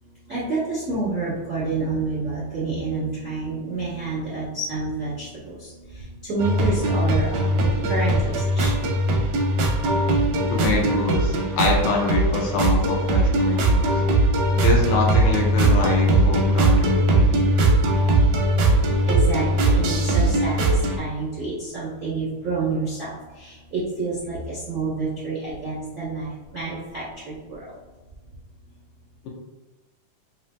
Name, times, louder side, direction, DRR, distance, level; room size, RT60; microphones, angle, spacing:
voice 1, 0.3-6.0 6.2-8.7 19.1-23.1 23.4-27.6, right 3 dB, 55° right, -10 dB, 0.8 m, -29 dB
sound 1, 6.4-21.0, right 2 dB, 80° right, 1.6 m, -20 dB
voice 2, 10.5-14.0 14.6-17.3, left 4 dB, 80° left, -2 dB, 2.0 m, -25 dB
5.0 x 2.8 x 2.4 m, 1.2 s
omnidirectional pair, 3.6 m